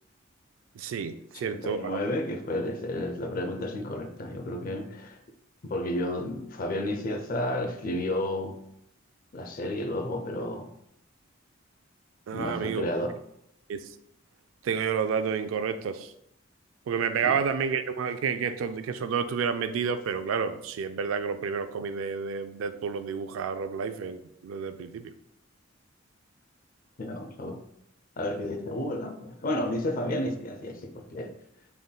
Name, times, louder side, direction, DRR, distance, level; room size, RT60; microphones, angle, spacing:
voice 1, 0.7-1.9 12.3-12.9 13.7-13.9 14.6-16.1 16.9-25.1, right 6 dB, 80° right, 10 dB, 0.3 m, -30 dB
voice 2, 1.4-5.2 5.6-8.6 9.3-10.7 12.3-13.2 17.2-17.3 27.0-27.6 28.2-31.3, left 1 dB, 45° left, 5 dB, 0.5 m, -32 dB
3.7 x 3.5 x 2.3 m, 0.74 s
head